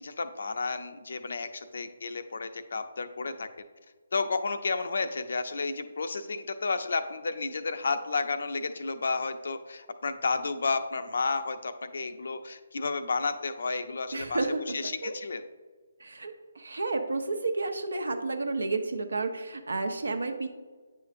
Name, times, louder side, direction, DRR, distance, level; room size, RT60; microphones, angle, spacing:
voice 1, 0.0-3.5 4.1-15.4, left 4 dB, 65° left, 9 dB, 0.5 m, -32 dB
voice 2, 14.1-14.8 15.0-15.1 16.0-20.5, right 3 dB, 75° right, 7 dB, 0.8 m, -31 dB
9.1 x 5.6 x 2.6 m, 1.4 s
figure-of-eight pair, 150°, 0 cm